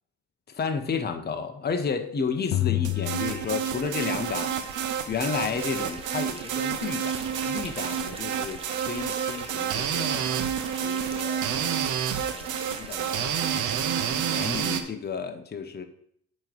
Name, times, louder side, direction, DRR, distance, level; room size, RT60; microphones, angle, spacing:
voice 1, 0.5-7.2 7.5-10.2 10.8-13.5 14.0-15.8, left 5 dB, 35° left, 6 dB, 0.9 m, -32 dB
sound 1, 2.5-4.3, left 15 dB, 85° left, 0.7 m, -29 dB
sound 2, 2.8-14.8, right 8 dB, 80° right, 0.8 m, -29 dB
sound 3, 4.2-13.1, right 2 dB, 20° right, 1.2 m, -43 dB
8.7 x 3.1 x 6.1 m, 0.66 s
cardioid pair, 90°, 30 cm